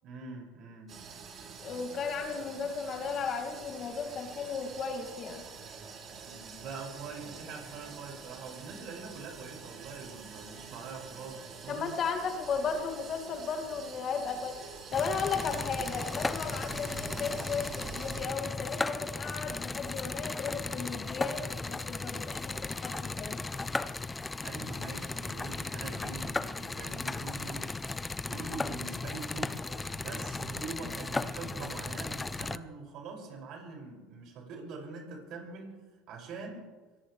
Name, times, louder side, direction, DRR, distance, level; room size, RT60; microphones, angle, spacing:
voice 1, 0.0-1.0 6.2-11.9 24.4-27.7 28.3-36.7, right 4 dB, 60° right, 0 dB, 6.3 m, -44 dB
sound 1, 0.9-18.2, right 5 dB, 40° right, 5.5 m, -47 dB
voice 2, 1.6-5.4 11.7-14.6 14.9-23.4, left 5 dB, 40° left, 4 dB, 2.3 m, -35 dB
sound 2, 14.9-32.6, left 3 dB, 15° left, 0.7 m, -36 dB
23.5 x 17.5 x 3.3 m, 1.3 s
supercardioid pair, 100°, 0 cm